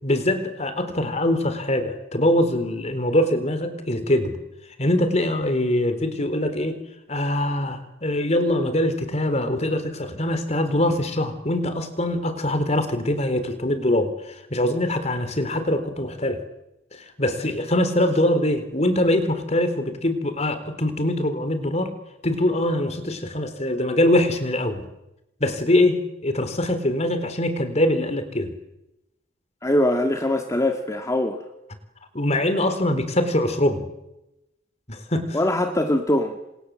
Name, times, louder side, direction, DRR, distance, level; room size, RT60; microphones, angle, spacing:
voice 1, 0.0-4.4 4.8-6.8 7.1-16.4 16.9-21.9 22.2-24.9 25.4-28.5 32.1-33.8 34.9-35.4, left 1 dB, 40° left, 10 dB, 3.9 m, -23 dB
voice 2, 29.6-31.4 35.3-36.4, left 1 dB, 20° left, 4 dB, 2.1 m, -22 dB
28.5 x 27.0 x 7.7 m, 0.90 s
head